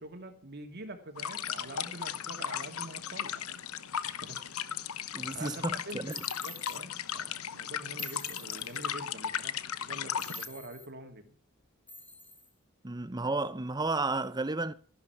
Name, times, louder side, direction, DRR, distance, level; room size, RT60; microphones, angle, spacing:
voice 1, 0.0-3.6 4.0-4.6 5.2-11.3, right 1 dB, 50° right, 2.6 m, -46 dB
sound 1, 1.2-10.5, left 8 dB, 80° left, 1.0 m, -36 dB
voice 2, 5.1-6.2 12.8-14.7, right 3 dB, 20° right, 0.7 m, -32 dB
sound 2, 6.1-6.8 8.0-8.9 10.2-10.9 11.9-12.5, equal, 5° left, 1.3 m, -46 dB
14.5 x 12.0 x 5.9 m
head